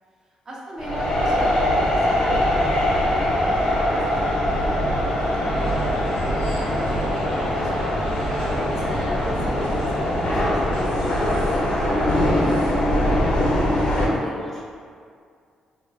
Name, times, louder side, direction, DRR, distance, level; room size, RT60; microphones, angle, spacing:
voice 1, 0.5-2.6 2.9-4.0 4.4-4.8 6.7-7.2 7.6-11.4 12.2-13.0, right 1 dB, 30° right, -5 dB, 0.6 m, -39 dB
sound 1, 0.8-14.1, left 1 dB, 55° left, 0.6 m, -22 dB
voice 2, 5.4-5.9 14.1-14.7, left 1 dB, 10° left, -5 dB, 0.4 m, -37 dB
sound 2, 5.5-10.8, equal, 85° left, 1.2 m, -32 dB
4.4 x 2.3 x 2.3 m, 2.2 s
wide cardioid pair, 160°, 2 cm